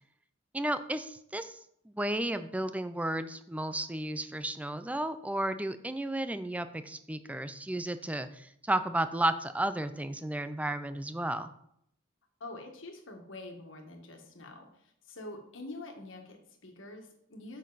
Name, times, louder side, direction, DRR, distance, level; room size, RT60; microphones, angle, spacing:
voice 1, 0.5-1.6 1.9-11.5, right 1 dB, 5° right, 11 dB, 0.4 m, -33 dB
voice 2, 12.4-17.6, left 2 dB, 80° left, 3 dB, 1.6 m, -46 dB
8.7 x 6.5 x 4.0 m, 0.73 s
head